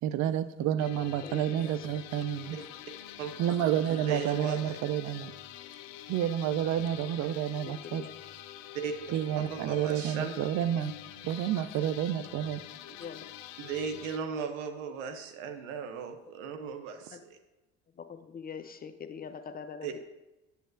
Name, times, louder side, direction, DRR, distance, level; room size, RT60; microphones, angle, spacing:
voice 1, 0.0-2.6 3.4-5.3 6.1-8.1 9.1-10.9 11.2-12.6, right 10 dB, 50° right, 11 dB, 0.5 m, -30 dB
sound 1, 0.8-14.2, left 12 dB, 75° left, 0.5 m, -46 dB
voice 2, 1.2-1.9 7.3-8.1 12.9-13.2 17.1-17.2 18.0-20.0, left 6 dB, 25° left, 9 dB, 0.5 m, -43 dB
voice 3, 3.9-4.8 8.8-8.9 9.4-10.3 13.6-17.4 19.8-19.9, right 6 dB, 75° right, 7 dB, 0.8 m, -36 dB
8.0 x 6.6 x 2.6 m, 1.0 s
hypercardioid pair, 60°, 38 cm